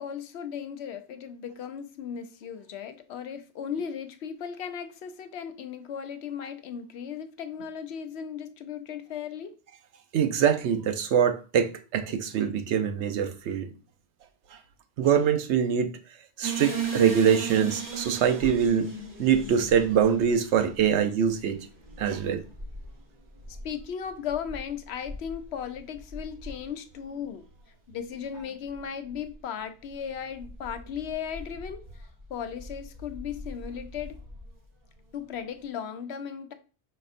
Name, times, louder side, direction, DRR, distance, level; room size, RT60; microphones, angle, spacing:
voice 1, 0.0-9.5 23.6-27.4 27.9-31.8 32.3-34.2 35.1-36.5, left 8 dB, 75° left, 0.8 m, -36 dB
voice 2, 10.1-13.7 15.0-15.9 16.4-18.9 19.2-21.6 22.0-22.4, right 8 dB, 80° right, 0.9 m, -24 dB
sound 1, 16.4-27.3 27.6-27.7 28.2-28.4 28.7-29.3 29.9-34.6, right 4 dB, 50° right, 1.3 m, -39 dB
5.1 x 4.2 x 2.5 m
omnidirectional pair, 1.1 m